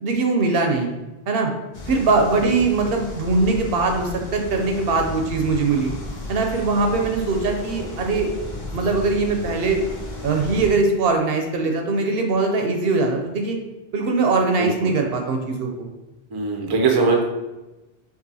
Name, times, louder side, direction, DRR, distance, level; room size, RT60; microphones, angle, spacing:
voice 1, 0.0-0.9 1.3-1.5 1.9-5.9 6.3-8.3 8.7-9.8 10.2-13.6 13.9-15.9, right 3 dB, 70° right, 3 dB, 0.8 m, -21 dB
sound 1, 1.7-10.7, left 2 dB, 50° left, 0.8 m, -34 dB
voice 2, 14.6-14.9 16.3-17.2, right 4 dB, 30° right, 1 dB, 0.5 m, -20 dB
5.4 x 2.5 x 2.7 m, 1.0 s
omnidirectional pair, 1.0 m